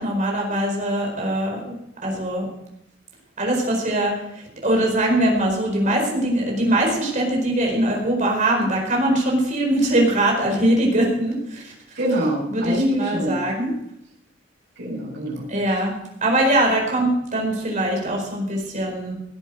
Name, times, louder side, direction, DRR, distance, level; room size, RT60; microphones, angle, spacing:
voice 1, 0.0-1.8 2.0-2.5 3.4-4.1 4.6-11.7 12.5-13.7 15.5-15.9 16.2-19.1, right 1 dB, 40° right, 0 dB, 4.7 m, -21 dB
voice 2, 12.0-13.4 14.8-15.4, right 1 dB, 60° right, -7 dB, 6.0 m, -24 dB
17.5 x 8.3 x 6.5 m, 0.80 s
head